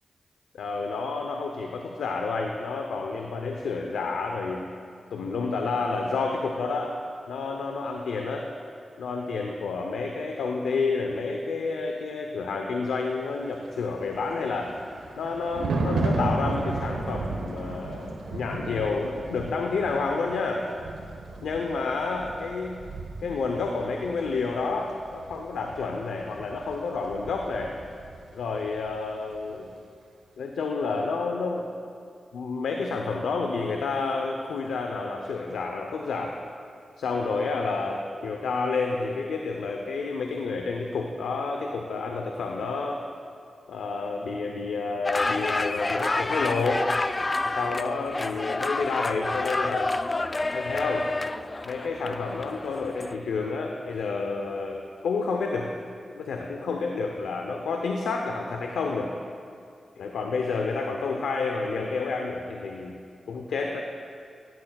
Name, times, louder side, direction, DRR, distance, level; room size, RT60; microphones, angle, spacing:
voice 1, 0.6-4.6 5.1-7.0 7.3-8.5 9.0-14.7 15.2-20.6 21.4-22.8 23.2-27.7 28.3-29.7 30.4-31.7 32.3-36.3 37.0-43.0 43.7-46.9 47.4-50.0 50.5-51.1 51.6-55.7 56.1-59.1 60.0-63.0 63.3-63.8, left 4 dB, 85° left, 2 dB, 0.7 m, -29 dB
Thunder, 13.8-28.3 28.6-28.9, right 3 dB, 85° right, 1.1 m, -34 dB
sound 1, 45.0-53.1, left 2 dB, 35° left, 0.4 m, -29 dB
16.5 x 14.0 x 2.4 m, 2.5 s
supercardioid pair, 40°, 0 cm